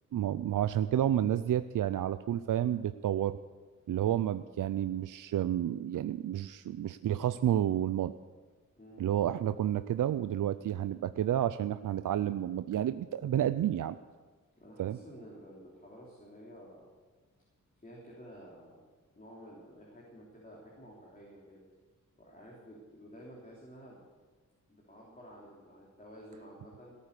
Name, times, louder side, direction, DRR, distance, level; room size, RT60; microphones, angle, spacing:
voice 1, 0.1-3.4 3.9-8.1 9.0-14.0 14.8-15.0, right 11 dB, 70° right, 12 dB, 0.5 m, -30 dB
voice 2, 8.8-9.1 14.6-16.9 17.8-18.8 19.1-21.6 22.2-24.0 24.7-26.9, equal, 25° left, -4 dB, 3.4 m, -52 dB
17.5 x 9.3 x 6.8 m, 1.4 s
wide cardioid pair, 90°, 33 cm